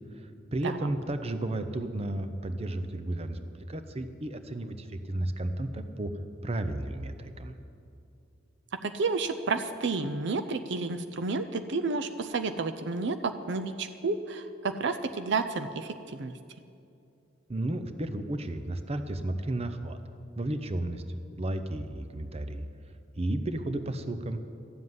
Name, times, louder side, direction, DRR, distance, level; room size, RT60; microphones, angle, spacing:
voice 1, 0.1-6.1 6.4-7.5 17.5-20.0 20.4-21.0 21.4-22.7 23.2-24.4, right 1 dB, 30° right, 9 dB, 0.7 m, -33 dB
voice 2, 8.8-16.3, right 4 dB, 65° right, 9 dB, 0.6 m, -31 dB
13.5 x 7.6 x 9.5 m, 2.5 s
head